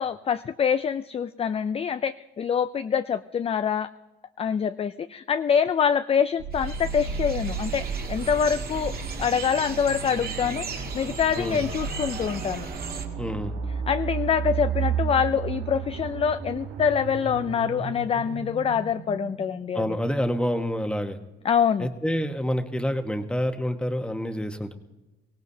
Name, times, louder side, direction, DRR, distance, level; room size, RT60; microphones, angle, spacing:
voice 1, 0.0-3.9 4.4-8.9 9.2-12.7 13.9-19.8 21.4-21.9, left 7 dB, 30° left, 12 dB, 0.4 m, -25 dB
sound 1, 6.4-20.2, right 7 dB, 85° right, 1.3 m, -34 dB
sound 2, 6.5-13.1, right 4 dB, 50° right, 2.1 m, -35 dB
voice 2, 13.2-13.5 19.7-21.2 21.8-24.7, equal, 5° left, 6 dB, 1.2 m, -27 dB
23.5 x 17.0 x 2.8 m, 1.1 s
cardioid pair, 90°, 20 cm